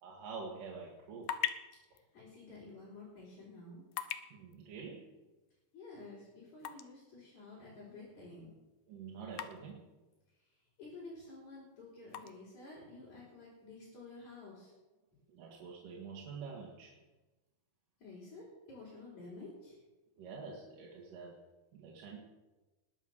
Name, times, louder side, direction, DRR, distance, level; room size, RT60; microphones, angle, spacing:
voice 1, 0.0-1.3 4.3-5.1 8.9-9.9 15.3-17.0 20.2-21.4 21.7-22.2, right 5 dB, 60° right, -2 dB, 3.1 m, -47 dB
sound 1, 0.8-14.6, left 11 dB, 80° left, 2.0 m, -47 dB
voice 2, 1.8-3.8 5.7-8.5 10.3-14.7 18.0-19.8, left 3 dB, 45° left, -6 dB, 5.3 m, -51 dB
20.0 x 9.0 x 6.6 m, 1.2 s
omnidirectional pair, 4.7 m